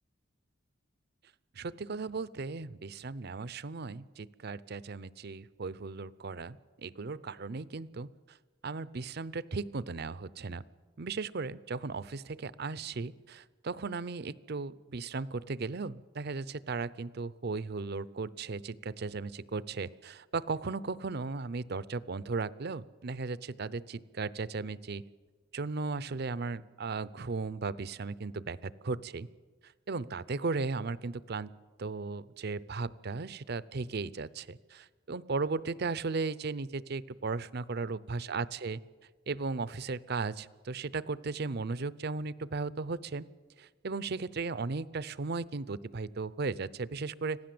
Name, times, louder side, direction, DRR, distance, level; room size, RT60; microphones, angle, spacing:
voice 1, 1.5-8.4 8.6-10.6 11.0-25.0 25.5-29.3 29.6-31.5 31.8-38.8 39.3-43.3 43.6-47.4, right 4 dB, 55° right, 18 dB, 0.6 m, -36 dB
26.0 x 16.0 x 7.7 m, 1.4 s
head